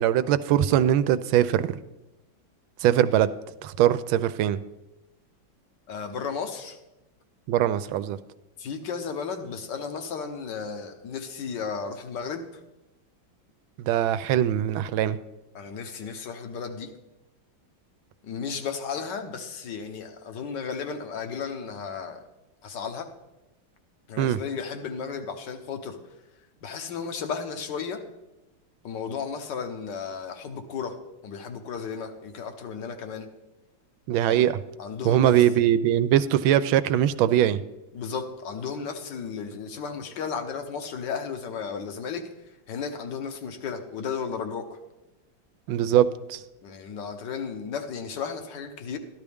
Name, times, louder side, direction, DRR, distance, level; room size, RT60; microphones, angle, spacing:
voice 1, 0.0-1.8 2.8-3.3 3.6-4.6 7.5-8.2 13.8-15.2 24.2-24.4 34.1-34.6 35.0-37.6 45.7-46.4, right 11 dB, 90° right, 1.4 m, -22 dB
voice 2, 5.9-6.8 8.6-12.4 15.5-16.9 18.2-22.2 22.6-23.1 24.1-26.0 26.6-28.0 28.8-31.0 31.2-33.3 34.3-34.4 34.8-35.4 37.9-42.3 42.7-44.8 46.6-49.0, left 6 dB, 65° left, 1.6 m, -34 dB
13.5 x 11.5 x 3.5 m
omnidirectional pair, 2.1 m